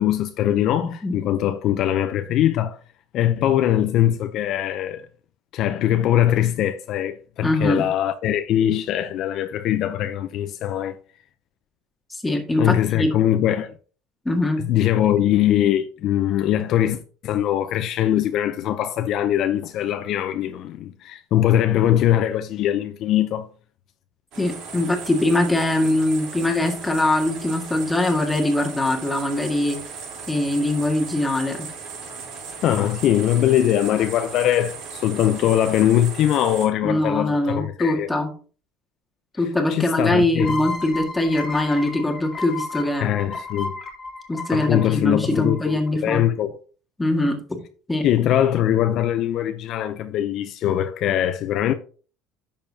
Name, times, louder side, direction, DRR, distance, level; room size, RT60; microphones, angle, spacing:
voice 1, 0.0-2.8 3.1-5.0 5.5-11.0 12.6-13.7 14.6-23.5 32.6-38.1 39.7-40.6 43.0-43.8 44.5-46.5 48.0-51.7, left 11 dB, 55° left, 0.6 m, -21 dB
voice 2, 0.8-1.2 7.4-7.9 12.1-13.1 14.2-14.6 24.4-29.8 30.3-31.7 36.8-38.3 39.4-43.1 44.3-46.2 47.0-47.6 47.9-48.0, left 1 dB, 10° left, 1.8 m, -22 dB
sound 1, 24.3-36.7, right 5 dB, 60° right, 3.5 m, -37 dB
sound 2, 40.4-45.9, left 3 dB, 25° left, 2.1 m, -33 dB
10.5 x 6.8 x 2.8 m
cardioid pair, 140°, 0 cm